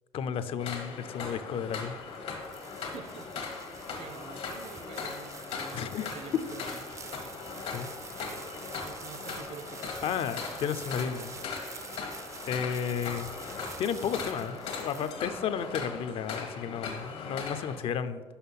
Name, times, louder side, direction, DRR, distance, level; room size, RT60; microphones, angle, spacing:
voice 1, 0.1-2.0 5.7-6.1 7.7-7.9 10.0-11.4 12.4-13.3 13.8-18.2, left 7 dB, 65° left, 12 dB, 0.5 m, -33 dB
sound 1, 0.6-17.8, left 4 dB, 80° left, 1.2 m, -39 dB
sound 2, 2.0-15.6, right 5 dB, 30° right, 0.4 m, -47 dB
voice 2, 2.8-3.3 4.0-6.9 7.5-7.7 8.7-10.3 16.6-16.9, right 5 dB, 65° right, 10 dB, 0.7 m, -47 dB
5.7 x 5.5 x 5.7 m, 1.5 s
cardioid pair, 110°, 10 cm